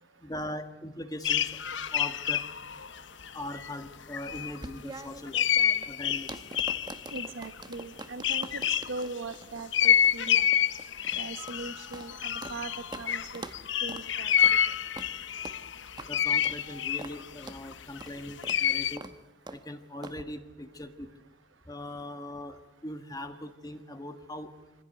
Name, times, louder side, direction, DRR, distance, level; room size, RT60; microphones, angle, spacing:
voice 1, 0.2-1.6 1.9-2.4 3.3-5.4 5.9-6.3 16.1-19.0 19.5-21.1 21.7-24.5, left 1 dB, 20° left, 8 dB, 1.5 m, -40 dB
sound 1, 1.2-3.9 4.1-4.6 5.3-9.0 9.7-19.0, left 9 dB, 65° left, 0.9 m, -28 dB
sound 2, 4.3-12.6 12.9-13.1 13.3-13.6 13.9-14.1 14.4-14.6 15.0-15.1 15.4-15.6 16.0-16.1 16.4-16.6 17.0-17.2 17.5-17.6 18.0-18.2 18.4-18.6 19.0-19.2 19.5-19.6 20.0-20.2, right 2 dB, 20° right, 1.0 m, -44 dB
voice 2, 7.1-8.6 8.9-10.5 11.2-12.7 13.0-13.4 13.8-14.6, right 3 dB, 75° right, 10 dB, 1.1 m, -40 dB
25.0 x 16.0 x 9.4 m, 1.1 s
head